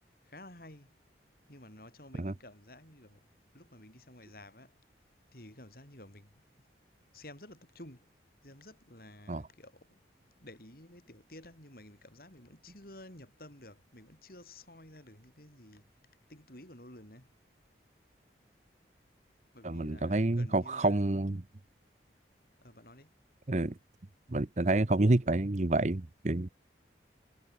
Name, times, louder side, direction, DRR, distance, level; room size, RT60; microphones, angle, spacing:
voice 1, 0.2-0.9 1.5-3.3 3.5-4.7 5.3-6.7 7.1-8.1 8.4-10.0 10.4-15.9 16.3-17.3 19.5-21.0 22.6-23.1, left 1 dB, 55° left, 6.4 m, -52 dB
voice 2, 19.6-21.4 23.5-23.7 24.3-26.5, right 2 dB, 40° right, 0.8 m, -28 dB
head